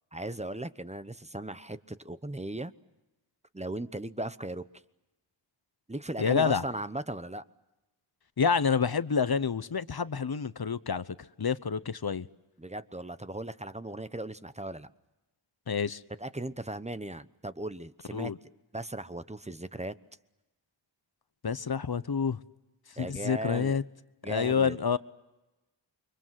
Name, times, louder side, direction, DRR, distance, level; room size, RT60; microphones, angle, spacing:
voice 1, 0.1-2.7 3.5-4.7 5.9-7.4 12.6-14.9 16.2-18.3 18.7-19.9 23.0-23.8 24.2-24.8, right 1 dB, 15° right, 1.0 m, -37 dB
voice 2, 6.2-6.6 8.4-11.0 11.4-12.3 15.7-16.0 18.1-18.4 21.4-22.4 23.0-23.8 24.3-25.0, left 6 dB, 50° left, 1.0 m, -28 dB
29.5 x 24.0 x 7.6 m
wide cardioid pair, 55°, 46 cm